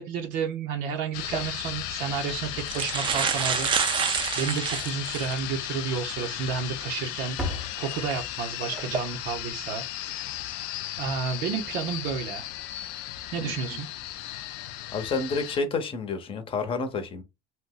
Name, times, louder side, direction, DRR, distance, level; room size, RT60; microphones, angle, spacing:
voice 1, 0.0-3.7 4.4-7.4 7.8-9.8 11.0-12.5 13.3-13.9, right 6 dB, 70° right, 0.7 m, -31 dB
sound 1, 1.1-15.6, left 13 dB, 70° left, 0.4 m, -35 dB
sound 2, 1.2-1.4 2.2-2.3 2.6-5.4 6.0-6.1 7.9-8.1 8.7-9.0, right 7 dB, 30° right, 0.5 m, -28 dB
Slam, 4.2-4.8 5.1-5.2 5.7-5.8 6.6-6.9 7.2-8.5 11.2-11.3 11.5-11.7 13.2-13.4, left 1 dB, 5° right, 0.9 m, -38 dB
voice 2, 14.9-17.2, left 4 dB, 30° left, 0.8 m, -29 dB
2.6 x 2.2 x 3.7 m
supercardioid pair, 115°, 17 cm